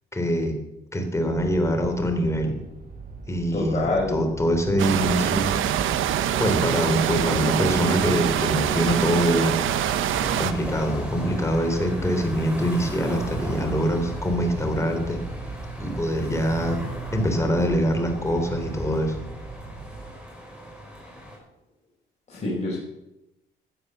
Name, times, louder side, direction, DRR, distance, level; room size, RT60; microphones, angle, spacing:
voice 1, 0.1-0.5 0.9-2.6 3.3-5.5 6.4-9.5 10.2-15.2 15.8-16.8 17.1-19.2, equal, 15° left, 4 dB, 3.9 m, -24 dB
sound 1, 1.3-20.1, right 3 dB, 45° right, 6.1 m, -38 dB
voice 2, 3.5-4.2 22.3-22.8, left 2 dB, 35° left, -6 dB, 5.4 m, -26 dB
sound 2, 4.8-10.5, right 10 dB, 85° right, 0.9 m, -24 dB
sound 3, 6.3-21.4, equal, 5° right, 5.6 m, -38 dB
15.5 x 9.8 x 7.0 m, 0.92 s
cardioid pair, 90°, 20 cm